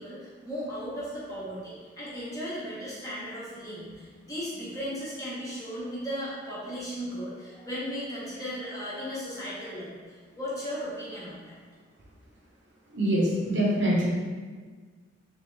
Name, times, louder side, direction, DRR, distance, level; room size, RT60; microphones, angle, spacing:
voice 1, 0.0-11.6, equal, 15° left, -9 dB, 1.1 m, -36 dB
voice 2, 12.9-14.1, right 1 dB, 65° right, -5 dB, 1.1 m, -24 dB
3.5 x 3.4 x 3.3 m, 1.5 s
head